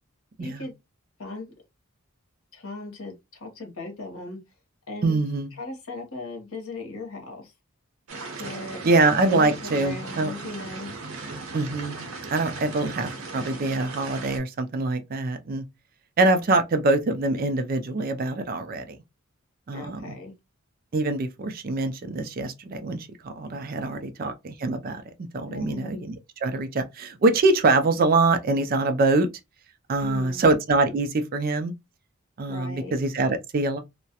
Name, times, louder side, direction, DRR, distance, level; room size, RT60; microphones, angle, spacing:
voice 1, 0.4-0.7 1.2-1.5 2.5-4.4 4.9-5.2 5.6-7.5 8.4-8.8 9.3-10.9 19.7-20.3 23.9-24.0 25.5-25.9 30.0-30.4 32.5-33.0, left 2 dB, 70° left, 0.9 m, -37 dB
voice 2, 5.0-5.5 8.8-10.3 11.5-12.0 12.3-15.6 16.2-19.0 19.7-20.1 20.9-26.2 26.4-29.3 29.9-31.7 32.4-33.8, right 2 dB, 40° right, 0.3 m, -24 dB
sound 1, 8.1-14.4, right 3 dB, 75° right, 0.7 m, -38 dB
2.3 x 2.1 x 2.7 m
head